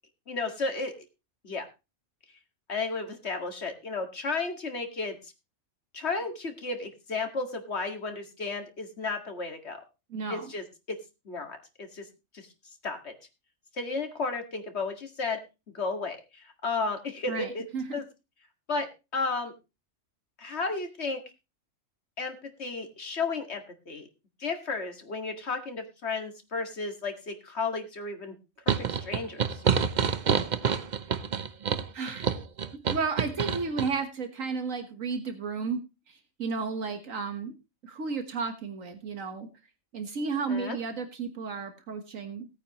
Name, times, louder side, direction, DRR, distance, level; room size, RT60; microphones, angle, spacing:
voice 1, 0.3-0.9 1.4-1.7 2.7-5.3 5.9-9.8 10.3-11.0 11.3-12.0 12.3-12.5 12.8-13.1 13.7-15.4 15.7-17.6 17.9-18.0 18.7-19.5 20.4-21.2 22.2-24.1 24.4-28.4 28.8-29.6 40.5-40.8, left 3 dB, 55° left, 5 dB, 2.3 m, -33 dB
voice 2, 10.1-10.5 17.3-18.0 31.9-32.3 32.9-35.8 36.1-37.5 37.8-39.5 39.9-42.5, right 4 dB, 80° right, 7 dB, 1.7 m, -33 dB
sound 1, 28.7-33.9, right 6 dB, 40° right, 0.7 m, -27 dB
18.0 x 8.9 x 3.0 m, 0.27 s
omnidirectional pair, 1.4 m